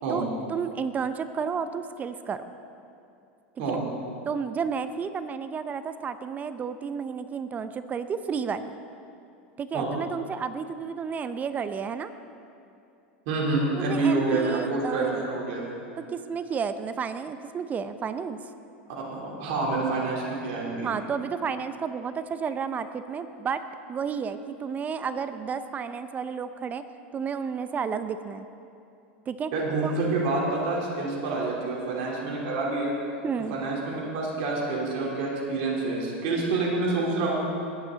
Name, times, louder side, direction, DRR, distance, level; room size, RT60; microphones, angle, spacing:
voice 1, 0.1-2.4 3.7-3.8 4.3-8.8 9.6-12.1 13.7-15.3 16.1-18.4 20.8-23.6 23.9-26.8 27.1-28.4 29.3-29.5 29.8-29.9 33.2-33.6, right 6 dB, 25° right, 11 dB, 0.6 m, -31 dB
voice 2, 13.3-15.7 19.1-21.0 29.5-32.9 33.5-37.4, right 3 dB, 60° right, -4 dB, 3.5 m, -27 dB
21.5 x 9.7 x 4.0 m, 2.7 s
hypercardioid pair, 105°, 6 cm